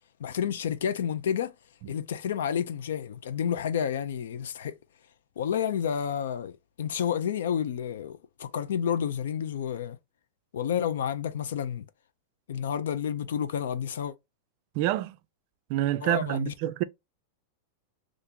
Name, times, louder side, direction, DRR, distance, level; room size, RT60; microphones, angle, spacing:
voice 1, 0.2-1.5 1.9-4.7 5.4-10.0 10.5-11.9 12.5-14.1 16.0-16.5, left 8 dB, 90° left, 0.4 m, -30 dB
voice 2, 14.7-15.2 15.7-16.8, right 14 dB, 45° right, 0.3 m, -27 dB
2.8 x 2.5 x 3.6 m
supercardioid pair, 160°, 0 cm